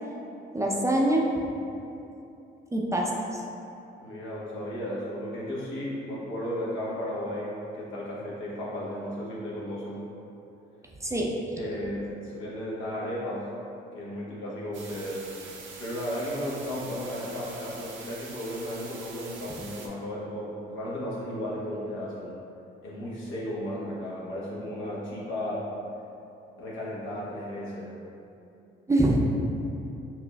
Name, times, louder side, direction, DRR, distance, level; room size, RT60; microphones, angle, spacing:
voice 1, 0.5-1.3 2.7-3.4 11.0-11.3 28.9-29.4, right 1 dB, 15° right, -2 dB, 0.4 m, -24 dB
voice 2, 4.0-10.1 11.6-13.5 13.9-15.3 15.8-22.3 22.8-25.7 26.6-27.9, equal, 75° left, -6 dB, 1.0 m, -34 dB
sound 1, 14.7-19.9, right 4 dB, 75° right, 0.6 m, -44 dB
5.8 x 2.4 x 2.2 m, 2.8 s
cardioid pair, 90°, 20 cm